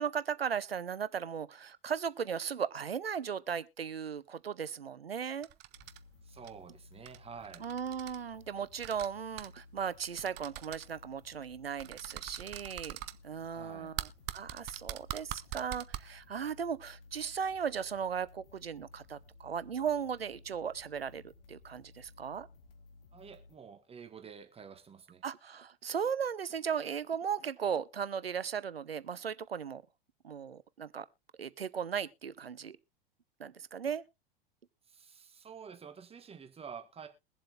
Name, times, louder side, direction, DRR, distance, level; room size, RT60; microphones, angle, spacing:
voice 1, 0.0-5.5 7.6-13.0 13.2-22.5 25.2-29.8 30.2-31.1 31.4-32.8 33.4-34.0, right 7 dB, 85° right, 0.6 m, -37 dB
sound 1, 5.4-6.0 6.4-6.5 7.1-7.2 7.4-8.2 8.8-9.1 9.4-9.5 10.2-10.9 11.8-13.1 14.0-16.0, right 15 dB, 35° right, 0.7 m, -42 dB
sound 2, 5.7-23.6, left 3 dB, 70° left, 1.3 m, -57 dB
voice 2, 6.2-7.7 13.5-13.9 23.1-25.2 34.9-37.1, right 6 dB, 20° right, 1.5 m, -49 dB
22.5 x 7.5 x 2.4 m
figure-of-eight pair, 85°, 29 cm